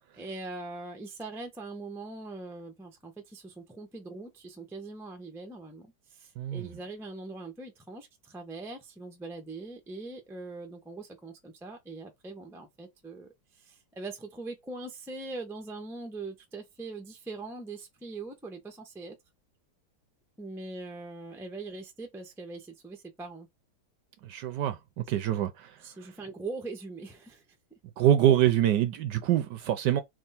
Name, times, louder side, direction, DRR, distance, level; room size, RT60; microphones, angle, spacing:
voice 1, 0.1-19.2 20.4-23.5 25.8-27.4, right 3 dB, 5° right, 0.3 m, -42 dB
voice 2, 6.4-6.7 24.2-25.5 28.0-30.0, right 11 dB, 70° right, 1.1 m, -25 dB
3.6 x 3.1 x 4.2 m
omnidirectional pair, 2.2 m